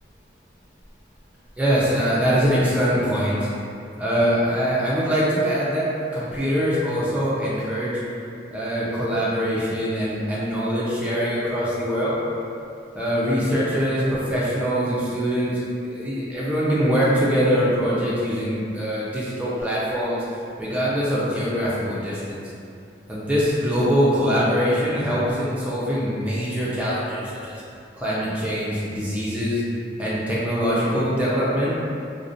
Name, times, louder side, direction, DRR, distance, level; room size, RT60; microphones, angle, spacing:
voice 1, 1.6-3.5 4.0-8.0 8.5-12.2 12.9-15.6 15.9-20.2 20.6-22.4 23.1-27.6 28.0-29.6 30.0-31.8, equal, 5° right, -8 dB, 0.4 m, -23 dB
2.4 x 2.1 x 2.5 m, 2.6 s
head